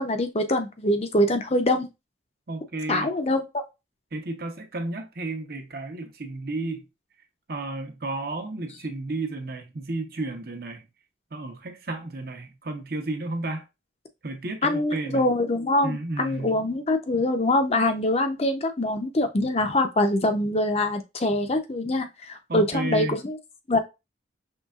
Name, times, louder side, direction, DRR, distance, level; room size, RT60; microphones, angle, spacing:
voice 1, 0.0-1.9 2.9-3.6 14.6-23.4 23.7-23.8, left 1 dB, 35° left, 0.6 m, -24 dB
voice 2, 2.5-3.1 4.1-6.9 7.5-10.8 11.3-13.6 14.2-15.3 15.8-16.5 22.5-23.1, right 2 dB, 50° right, 0.8 m, -32 dB
5.5 x 3.3 x 2.4 m
head